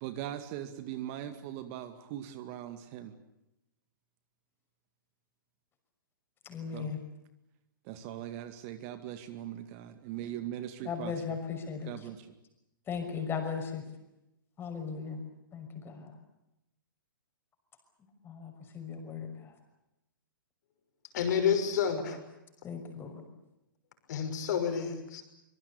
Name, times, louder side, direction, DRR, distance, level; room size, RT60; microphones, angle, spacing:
voice 1, 0.0-3.1 6.7-6.9 7.9-11.1 11.9-12.2, right 11 dB, 40° right, 10 dB, 2.2 m, -40 dB
voice 2, 6.4-7.0 10.8-12.1 12.9-13.8 14.6-15.2 15.5-16.1 18.2-19.5 22.6-23.1, left 6 dB, 20° left, 6 dB, 6.0 m, -37 dB
voice 3, 21.1-22.2 24.1-25.2, left 7 dB, 55° left, 7 dB, 6.1 m, -29 dB
25.5 x 23.0 x 8.6 m, 0.88 s
hypercardioid pair, 125°, 12 cm